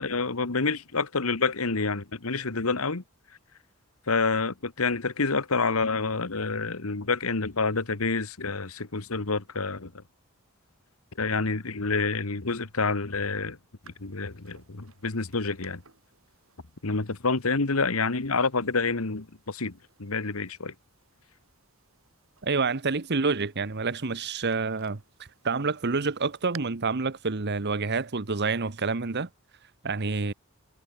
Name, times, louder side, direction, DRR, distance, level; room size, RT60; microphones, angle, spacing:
voice 1, 0.0-3.0 4.1-9.9 11.2-13.6 14.0-15.8 16.8-20.7, left 4 dB, 85° left, 1.5 m, -28 dB
sound 1, 13.8-26.6, right 7 dB, 70° right, 7.3 m, -57 dB
voice 2, 22.4-25.0 25.4-29.3 29.8-30.3, right 4 dB, 50° right, 1.1 m, -28 dB
head